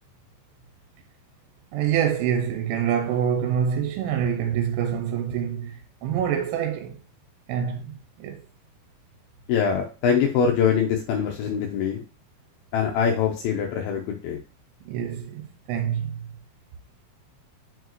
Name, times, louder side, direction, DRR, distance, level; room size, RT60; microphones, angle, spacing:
voice 1, 1.7-7.0 7.5-8.4 14.9-16.2, right 8 dB, 85° right, 3.2 m, -26 dB
voice 2, 9.5-12.0 12.7-14.4, left 7 dB, 90° left, 2.1 m, -23 dB
6.7 x 4.7 x 3.1 m
omnidirectional pair, 5.5 m